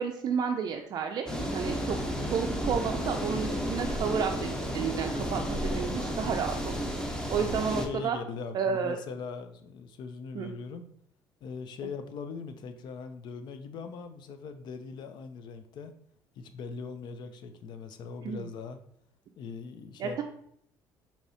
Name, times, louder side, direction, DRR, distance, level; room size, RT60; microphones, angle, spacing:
voice 1, 0.0-6.9 7.3-8.2 8.5-9.0 10.3-10.5 18.2-18.4 20.0-20.2, right 6 dB, 50° right, 4 dB, 0.4 m, -31 dB
sound 1, 1.3-7.9, equal, 10° left, 0.8 m, -32 dB
voice 2, 7.3-10.9 11.4-15.9 16.4-18.8 19.4-20.2, left 5 dB, 60° left, 9 dB, 0.5 m, -40 dB
4.6 x 2.8 x 2.7 m, 0.68 s
supercardioid pair, 85°, 9 cm